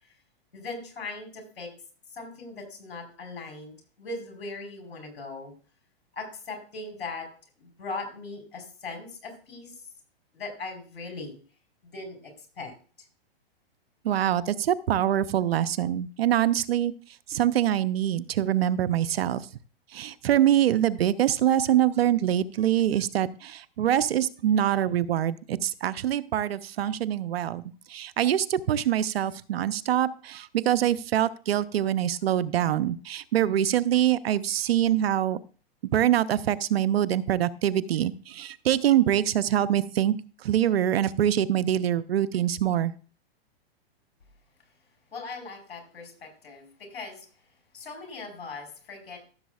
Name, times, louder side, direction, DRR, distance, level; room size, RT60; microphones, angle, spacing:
voice 1, 0.5-1.7 2.1-5.5 6.1-7.3 7.6-9.8 10.3-11.3 11.8-12.7 45.1-47.3 47.7-49.2, left 3 dB, 80° left, 4 dB, 4.2 m, -39 dB
voice 2, 14.0-16.9 17.3-19.5 19.9-27.6 27.9-35.4 35.9-40.2 40.4-42.9, right 11 dB, 80° right, 17 dB, 0.7 m, -24 dB
14.5 x 7.1 x 2.4 m, 0.39 s
hypercardioid pair, 135°, 30 cm